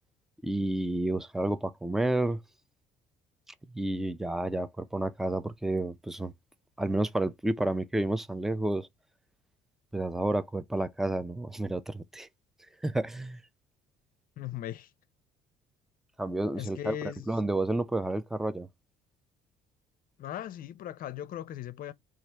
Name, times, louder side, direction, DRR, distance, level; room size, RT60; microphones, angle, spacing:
voice 1, 0.4-2.4 3.7-6.3 6.8-8.9 9.9-12.3 12.8-13.4 16.2-17.0 17.3-18.7, right 1 dB, ahead, 0.4 m, -30 dB
voice 2, 14.4-14.9 16.5-17.3 20.2-21.9, left 11 dB, 55° left, 0.5 m, -38 dB
4.1 x 2.5 x 4.5 m
cardioid pair, 110°, 17 cm